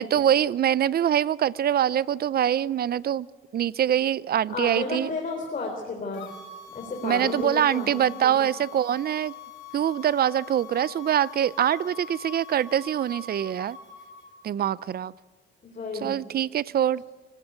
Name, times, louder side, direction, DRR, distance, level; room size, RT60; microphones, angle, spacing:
voice 1, 0.0-3.3 3.5-5.1 7.0-9.3 9.7-13.8 14.4-15.1 16.0-17.0, right 10 dB, 50° right, 20 dB, 0.6 m, -24 dB
voice 2, 4.5-6.3 6.7-8.3 15.6-16.1, left 3 dB, 40° left, 1 dB, 4.0 m, -32 dB
sound 1, 6.1-14.3, left 7 dB, 75° left, 2.7 m, -43 dB
24.5 x 16.5 x 8.2 m, 1.3 s
cardioid pair, 90°, 20 cm